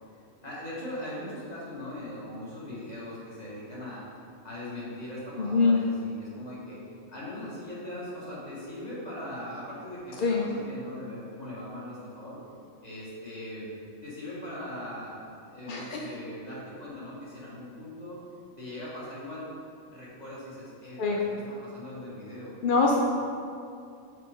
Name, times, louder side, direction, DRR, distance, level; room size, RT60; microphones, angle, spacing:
voice 1, 0.4-4.0 4.4-6.8 7.1-12.4 12.8-13.7 14.0-18.2 18.6-19.5 19.9-22.5 22.8-23.0, left 1 dB, 30° left, -7 dB, 1.7 m, -40 dB
voice 2, 5.4-5.8 10.2-10.5 15.7-16.1 21.0-21.2 22.6-23.0, left 4 dB, 60° left, -1 dB, 0.5 m, -24 dB
6.6 x 5.0 x 3.6 m, 2.5 s
omnidirectional pair, 1.4 m